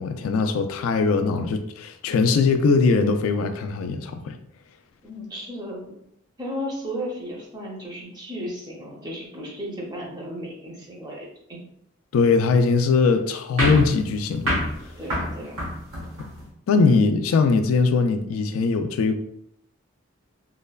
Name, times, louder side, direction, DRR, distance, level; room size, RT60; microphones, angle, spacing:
voice 1, 0.0-4.4 12.1-14.6 16.7-19.2, left 4 dB, 75° left, 8 dB, 0.3 m, -21 dB
voice 2, 5.0-5.8 6.4-11.6 14.9-15.6, equal, 20° right, -3 dB, 0.6 m, -34 dB
sound 1, 13.6-16.5, equal, 70° right, 0.9 m, -27 dB
3.2 x 2.1 x 2.3 m, 0.75 s
head